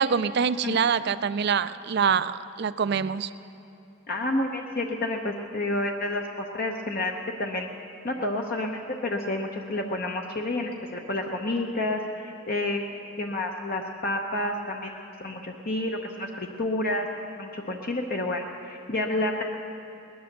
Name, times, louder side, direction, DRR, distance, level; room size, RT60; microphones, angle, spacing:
voice 1, 0.0-3.3, right 6 dB, 50° right, 14 dB, 0.4 m, -25 dB
voice 2, 4.1-7.7 8.0-12.8 13.2-17.1 17.4-19.4, left 2 dB, 45° left, 2 dB, 0.8 m, -29 dB
19.0 x 11.0 x 6.6 m, 2.8 s
head